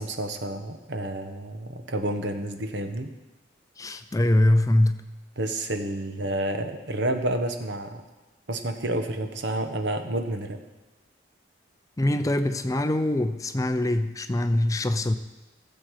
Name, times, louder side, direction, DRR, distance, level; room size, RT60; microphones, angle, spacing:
voice 1, 0.0-3.1 5.4-8.0 8.5-10.6, right 1 dB, 70° right, 6 dB, 1.1 m, -30 dB
voice 2, 3.8-5.1 12.0-15.2, left 1 dB, 20° left, 9 dB, 0.4 m, -23 dB
15.5 x 7.4 x 4.8 m, 1.1 s
head